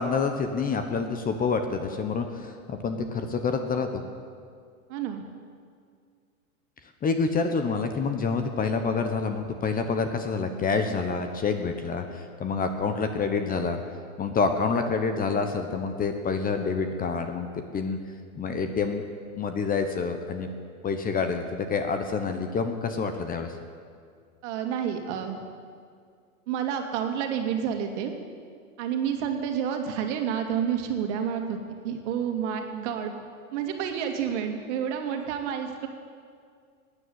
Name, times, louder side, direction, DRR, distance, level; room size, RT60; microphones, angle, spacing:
voice 1, 0.0-4.0 7.0-13.8 14.2-17.5 17.7-18.0 18.3-19.0 19.4-20.5 20.8-23.5, left 5 dB, 20° left, 7 dB, 1.1 m, -27 dB
voice 2, 4.9-5.2 24.4-25.4 26.5-28.1 28.8-31.6 31.8-33.2 33.5-35.9, right 8 dB, 55° right, 5 dB, 2.4 m, -29 dB
15.5 x 9.9 x 9.4 m, 2.1 s
hypercardioid pair, 120°, 43 cm